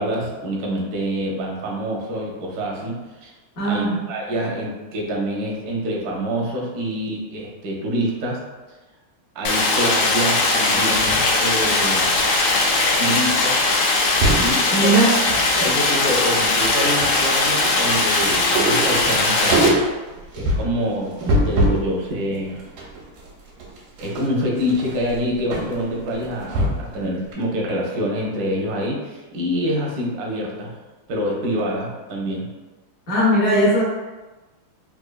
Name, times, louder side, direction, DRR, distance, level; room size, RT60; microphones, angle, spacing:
voice 1, 0.0-3.3 3.7-8.4 9.3-12.3 13.0-13.6 14.3-15.1 15.6-19.7 20.3-22.6 24.0-30.7 31.1-32.5, equal, 75° right, -1 dB, 0.9 m, -26 dB
voice 2, 3.6-4.0 14.7-15.2 33.1-33.8, right 1 dB, 55° left, -5 dB, 1.0 m, -18 dB
Stream, 9.4-19.7, left 3 dB, 75° left, 1.4 m, -19 dB
sound 1, 10.9-12.9 13.2-13.4 13.7-14.5 15.1-15.7 16.0-21.9 22.3-27.0 27.3-27.4, right 1 dB, 90° right, 1.7 m, -25 dB
4.2 x 2.5 x 2.3 m, 1.2 s
omnidirectional pair, 2.4 m